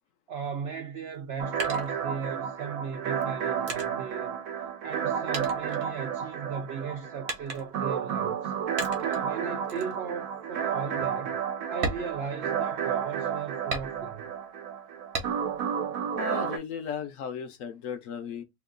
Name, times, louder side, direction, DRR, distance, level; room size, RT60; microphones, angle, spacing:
voice 1, 0.3-4.4 4.8-8.5 9.0-11.4 11.7-14.3, right 6 dB, 90° right, 0.5 m, -37 dB
sound 1, 1.1-2.6 3.2-5.0 5.3-6.5 7.3-7.9 8.8-9.3 9.7-10.0 10.4-10.5 10.9-11.1 11.7-12.9 13.7-14.4 15.1-15.7 16.1-16.9, right 3 dB, 50° right, 1.1 m, -37 dB
sound 2, 1.4-16.6, right 8 dB, 70° right, 1.1 m, -32 dB
voice 2, 16.2-18.4, left 7 dB, 65° left, 0.9 m, -35 dB
2.9 x 2.4 x 3.6 m
omnidirectional pair, 1.7 m